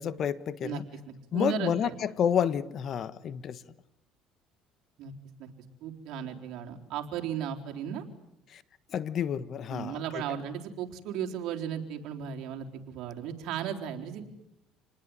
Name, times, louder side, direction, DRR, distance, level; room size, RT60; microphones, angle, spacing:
voice 1, 0.0-0.8 1.3-3.6 8.5-8.6 8.9-10.2, left 8 dB, 45° left, 17 dB, 1.3 m, -30 dB
voice 2, 0.6-1.9 5.0-5.1 5.4-5.5 5.8-8.0 9.7-14.2, right 9 dB, 65° right, 2 dB, 4.0 m, -36 dB
28.0 x 20.5 x 9.8 m, 0.83 s
cardioid pair, 120°, 0 cm